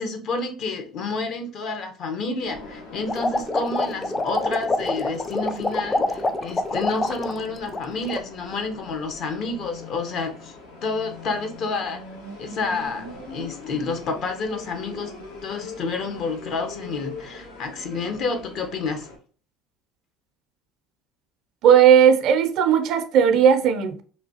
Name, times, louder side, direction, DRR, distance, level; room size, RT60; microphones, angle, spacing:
voice 1, 0.0-10.5 10.8-12.0 12.4-15.1 15.4-19.1, left 3 dB, 55° left, 0.7 m, -29 dB
sound 1, 2.4-19.2, left 3 dB, 80° left, 0.9 m, -41 dB
sound 2, 3.1-7.4 7.7-8.2, left 2 dB, 20° left, 0.4 m, -25 dB
voice 2, 21.6-24.0, right 8 dB, 60° right, 0.4 m, -16 dB
3.1 x 2.3 x 2.7 m
hypercardioid pair, 70°, 0 cm